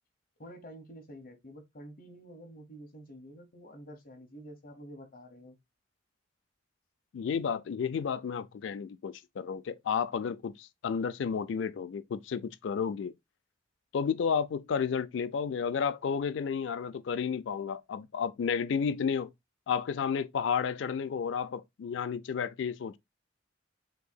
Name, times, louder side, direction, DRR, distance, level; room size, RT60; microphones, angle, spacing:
voice 1, 0.4-5.6, equal, 50° left, 1.0 m, -49 dB
voice 2, 7.1-13.1 13.9-19.3 19.7-23.0, left 6 dB, 80° left, 0.4 m, -32 dB
6.6 x 2.8 x 2.2 m
head